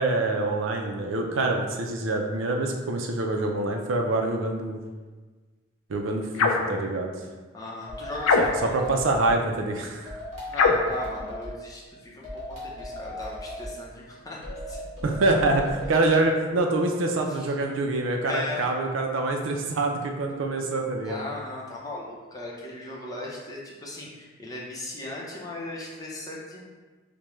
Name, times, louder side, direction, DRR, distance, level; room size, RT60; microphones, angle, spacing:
voice 1, 0.0-4.8 5.9-7.1 8.4-10.2 15.0-21.2, right 2 dB, 80° right, 2 dB, 0.5 m, -26 dB
sound 1, 6.3-6.7 8.2-8.8 10.5-11.0, left 4 dB, 90° left, 0.4 m, -22 dB
voice 2, 7.5-8.8 10.5-14.8 17.3-17.5 18.3-18.7 21.0-26.6, left 2 dB, 20° left, -4 dB, 0.6 m, -37 dB
sound 2, 7.9-9.4 10.1-11.6 12.2-13.8 14.4-15.9, left 1 dB, 35° right, 1.3 m, -37 dB
4.9 x 2.2 x 3.0 m, 1.3 s
head